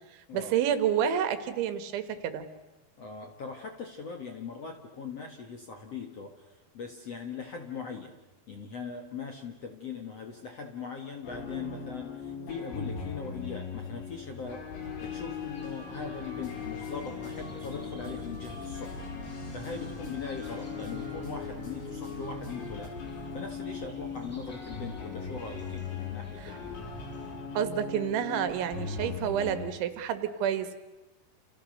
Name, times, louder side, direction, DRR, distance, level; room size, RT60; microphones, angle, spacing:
voice 1, 0.1-2.4 27.6-30.8, right 9 dB, 90° right, 10 dB, 4.1 m, -29 dB
voice 2, 3.0-8.1 8.5-14.7 15.0-19.1 19.5-26.8, left 5 dB, 55° left, 4 dB, 1.8 m, -40 dB
sound 1, 11.2-29.7, left 6 dB, 70° left, 5.7 m, -39 dB
sound 2, 13.3-27.4, right 4 dB, 5° right, 5.6 m, -52 dB
sound 3, 14.8-22.9, left 1 dB, 35° left, 7.8 m, -46 dB
29.5 x 29.0 x 6.7 m, 1.0 s
omnidirectional pair, 5.2 m